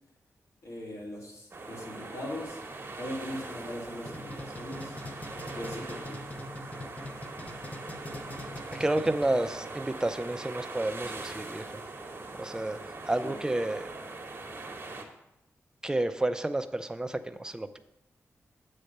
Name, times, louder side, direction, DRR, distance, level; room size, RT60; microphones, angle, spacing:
voice 1, 0.6-2.6 3.0-5.0 5.5-6.2 13.2-13.4, left 1 dB, 70° left, -3 dB, 2.3 m, -40 dB
sound 1, 1.5-15.0, right 3 dB, 45° right, 1.1 m, -41 dB
sound 2, 4.1-9.6, left 1 dB, 30° left, 0.8 m, -42 dB
voice 2, 8.7-11.8 12.4-12.8 13.1-13.9 15.8-17.8, right 1 dB, 15° right, 9 dB, 0.4 m, -30 dB
8.1 x 3.3 x 6.5 m, 0.87 s
wide cardioid pair, 100°, 5 cm